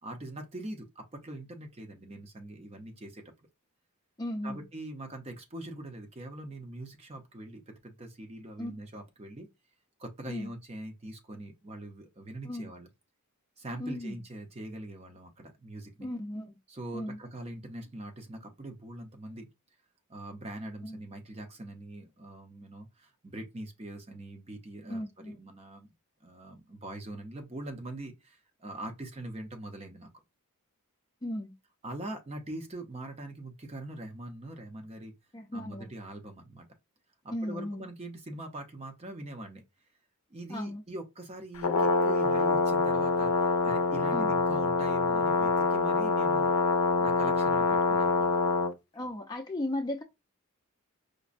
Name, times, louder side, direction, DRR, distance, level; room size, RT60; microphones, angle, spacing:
voice 1, 0.0-3.2 4.4-9.5 10.0-12.9 13.6-16.1 16.7-19.5 20.1-25.9 26.2-30.1 31.8-35.1 35.5-36.7 37.2-39.6 40.3-46.5 47.0-48.3, right 1 dB, 25° right, 0.6 m, -42 dB
voice 2, 4.2-4.6 8.6-8.7 10.3-10.5 12.4-12.7 13.8-14.2 16.0-16.5 16.9-17.2 20.8-21.0 24.9-25.4 31.2-31.5 35.3-35.9 37.3-37.8 40.5-40.8 44.1-44.3 48.9-50.0, left 1 dB, 20° left, 0.4 m, -36 dB
Brass instrument, 41.6-48.7, left 3 dB, 80° left, 0.5 m, -26 dB
5.1 x 2.1 x 2.4 m
head